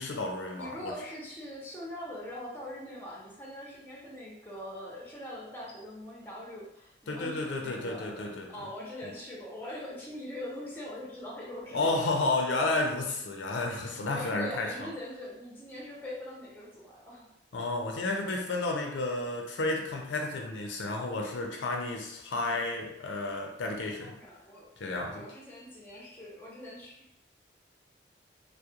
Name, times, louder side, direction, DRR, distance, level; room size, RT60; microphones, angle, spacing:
voice 1, 0.0-0.9 7.1-8.7 11.7-14.9 17.5-24.2 24.8-25.3, left 2 dB, 90° left, 1 dB, 0.5 m, -32 dB
voice 2, 0.6-12.0 12.6-13.1 14.1-17.3 24.0-24.7 25.1-27.2, left 1 dB, 10° left, -6 dB, 0.7 m, -42 dB
2.3 x 2.0 x 2.8 m, 0.81 s
head